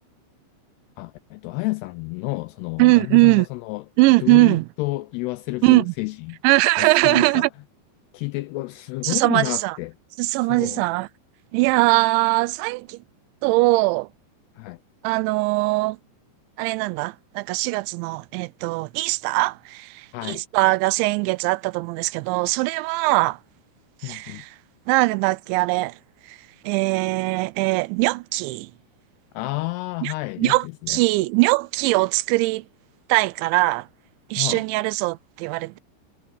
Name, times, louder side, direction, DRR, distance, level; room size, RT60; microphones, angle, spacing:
voice 1, 1.0-3.8 4.2-6.4 6.8-7.5 8.1-9.9 10.4-10.8 14.6-14.8 20.1-20.4 24.0-24.4 29.3-31.0 34.4-34.7, left 22 dB, 85° left, 2.3 m, -30 dB
voice 2, 2.8-3.5 4.0-4.7 5.6-5.9 6.4-7.5 9.0-9.8 10.2-11.1 11.5-13.0 13.4-14.1 15.0-16.0 16.6-23.4 24.0-24.5 24.9-26.0 26.3-26.4 26.6-28.7 30.0-32.7 33.1-33.9 34.3-35.8, right 23 dB, 90° right, 2.9 m, -21 dB
omnidirectional pair, 5.2 m